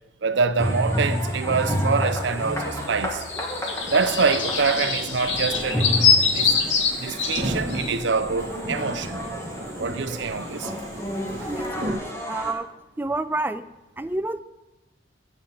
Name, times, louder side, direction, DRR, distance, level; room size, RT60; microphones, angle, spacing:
voice 1, 0.2-3.2 3.9-5.9 6.3-6.6 7.0-9.2 9.8-10.7 11.2-11.5, right 5 dB, 75° right, 0.6 m, -25 dB
sound 1, 0.6-12.5, equal, 15° left, 1.5 m, -30 dB
sound 2, 2.3-2.4 2.7-8.0, left 5 dB, 80° left, 1.6 m, -24 dB
sound 3, 3.8-11.9, right 1 dB, 45° right, 1.6 m, -35 dB
voice 2, 11.4-12.0 12.3-12.7 13.0-13.7 14.0-14.4, right 2 dB, 10° right, 0.3 m, -28 dB
7.9 x 7.0 x 7.8 m
head